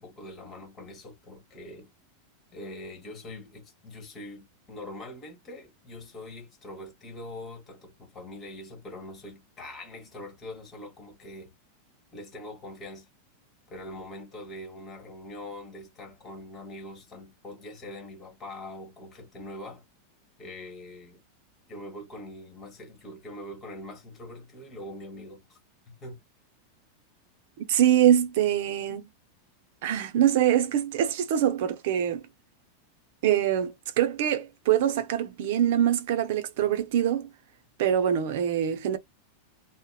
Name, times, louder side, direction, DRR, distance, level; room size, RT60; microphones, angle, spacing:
voice 1, 0.0-1.9 2.5-11.5 12.1-13.1 13.7-19.8 20.4-21.2 21.7-25.6 26.0-26.2, left 1 dB, 25° left, 1.3 m, -43 dB
voice 2, 27.6-29.1 29.8-32.2 33.2-37.3 37.8-39.0, right 10 dB, 60° right, 0.6 m, -24 dB
2.7 x 2.1 x 2.3 m
supercardioid pair, 150°, 0 cm